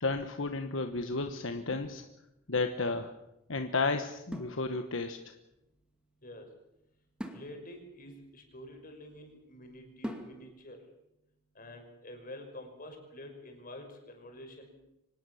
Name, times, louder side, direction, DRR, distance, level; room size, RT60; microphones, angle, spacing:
voice 1, 0.0-2.0 2.5-3.1 3.5-5.3, left 3 dB, 75° left, 7 dB, 1.3 m, -32 dB
sound 1, 1.7-2.7 4.3-5.2 7.2-9.2 10.0-10.8, equal, 5° right, 2.4 m, -45 dB
voice 2, 7.3-10.8 11.6-14.7, left 1 dB, 45° left, 4 dB, 5.7 m, -48 dB
24.5 x 19.0 x 7.1 m, 0.86 s
head